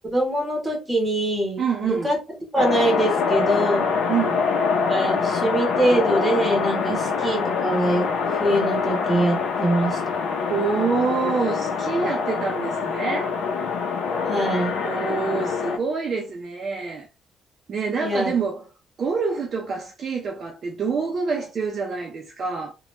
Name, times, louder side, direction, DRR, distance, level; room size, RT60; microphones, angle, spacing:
voice 1, 0.1-2.2 2.5-3.9 4.9-8.1 8.4-10.0 14.2-14.8 18.0-18.3, right 1 dB, 5° right, 1.0 m, -23 dB
voice 2, 1.6-2.1 4.1-4.4 6.9-7.1 10.5-13.3 14.8-17.1 17.7-18.7 19.0-22.7, right 5 dB, 35° right, 0.4 m, -26 dB
sound 1, 2.6-15.8, left 5 dB, 80° left, 0.6 m, -25 dB
2.9 x 2.2 x 3.1 m
cardioid pair, 175°, 0 cm